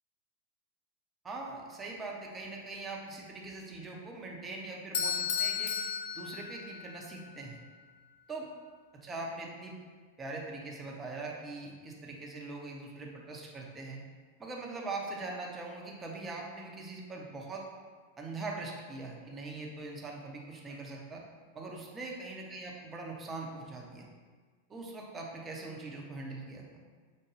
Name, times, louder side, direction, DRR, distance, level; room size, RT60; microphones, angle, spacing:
voice 1, 1.2-5.7 6.1-7.6 8.3-8.5 9.0-9.7 10.2-14.0 14.4-17.6 18.2-21.2 21.5-24.1 24.7-26.6, right 3 dB, 20° right, -1 dB, 0.6 m, -42 dB
Bell / Doorbell, 4.9-7.0, left 7 dB, 50° left, 0.3 m, -33 dB
4.8 x 2.2 x 3.1 m, 1.5 s
figure-of-eight pair, 90°, 0 cm